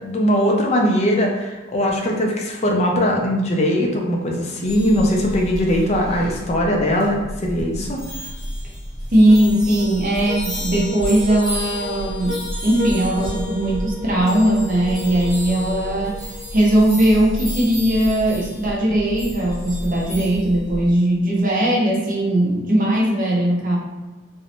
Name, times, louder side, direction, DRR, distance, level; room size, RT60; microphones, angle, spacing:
voice 1, 0.0-8.0, equal, 30° left, 0 dB, 0.4 m, -20 dB
sound 1, 4.6-21.0, equal, 5° left, 1.0 m, -31 dB
voice 2, 9.1-16.2 16.5-23.8, right 1 dB, 40° right, -3 dB, 0.6 m, -19 dB
sound 2, 9.3-16.8, left 3 dB, 70° left, 0.8 m, -35 dB
2.6 x 2.0 x 2.8 m, 1.2 s
head